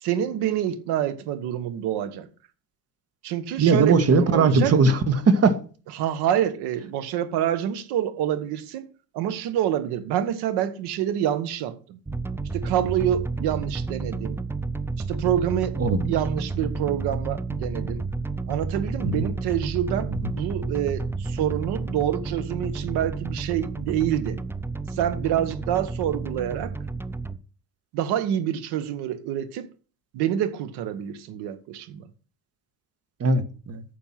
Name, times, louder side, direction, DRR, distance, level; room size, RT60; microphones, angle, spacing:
voice 1, 0.0-2.3 3.2-4.7 5.9-8.9 9.1-12.0 12.5-14.4 15.1-15.8 16.1-18.0 18.5-24.4 24.9-26.8 27.9-29.7 30.1-32.1, right 10 dB, 70° right, 1.4 m, -27 dB
voice 2, 3.6-5.5 15.8-16.1 19.0-19.1 33.2-33.8, right 4 dB, 35° right, 1.6 m, -19 dB
sound 1, 12.1-27.4, right 3 dB, 5° right, 0.5 m, -31 dB
9.3 x 6.9 x 5.8 m
supercardioid pair, 80°, 41 cm